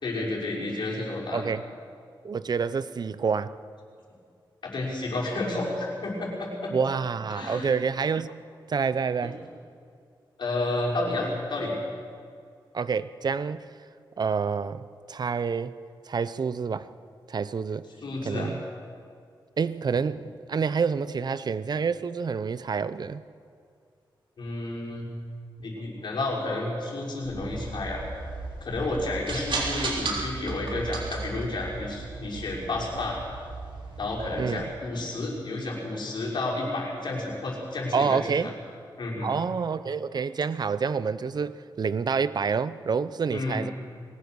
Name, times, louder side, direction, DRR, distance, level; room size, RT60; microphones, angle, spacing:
voice 1, 0.0-1.4 4.6-6.7 7.3-7.8 10.4-11.8 18.0-18.5 24.4-25.1 25.6-28.0 28.6-33.2 34.0-38.5 39.0-39.3 43.3-43.7, left 2 dB, 65° left, -3 dB, 6.1 m, -31 dB
voice 2, 2.2-3.6 6.7-8.3 8.7-9.4 12.7-13.7 14.2-15.8 16.1-16.9 17.3-17.9 18.2-18.6 19.6-23.2 34.4-34.6 37.9-38.5 39.2-43.7, right 5 dB, 55° right, 15 dB, 0.8 m, -28 dB
sound 1, 27.2-34.6, right 3 dB, 75° right, 3.6 m, -35 dB
22.5 x 19.0 x 6.3 m, 2.3 s
wide cardioid pair, 95°, 8 cm